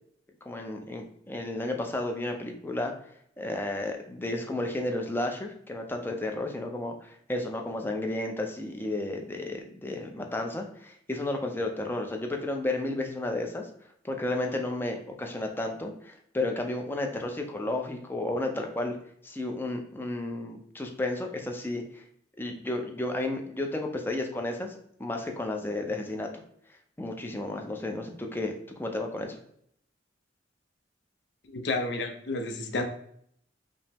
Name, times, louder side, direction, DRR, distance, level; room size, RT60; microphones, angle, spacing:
voice 1, 0.4-2.9 3.4-13.7 14.0-19.0 19.2-22.0 22.4-24.7 25.0-26.3 27.0-28.5 28.8-29.4, left 2 dB, 10° left, 2 dB, 0.4 m, -32 dB
voice 2, 31.5-32.8, left 2 dB, 65° left, 5 dB, 0.6 m, -30 dB
5.2 x 2.0 x 3.4 m, 0.68 s
head